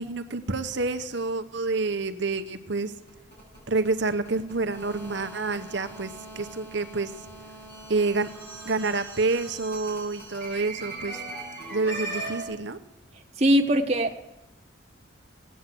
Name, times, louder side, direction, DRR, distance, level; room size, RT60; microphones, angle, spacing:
voice 1, 0.0-2.9 3.7-7.1 7.9-8.3 8.6-11.2 11.7-12.8, right 3 dB, 60° right, 8 dB, 0.9 m, -28 dB
sound 1, 2.9-12.4, right 2 dB, 55° left, 6.9 m, -40 dB
voice 2, 13.4-14.2, equal, 30° right, 3 dB, 0.7 m, -21 dB
17.5 x 9.3 x 7.6 m, 0.98 s
head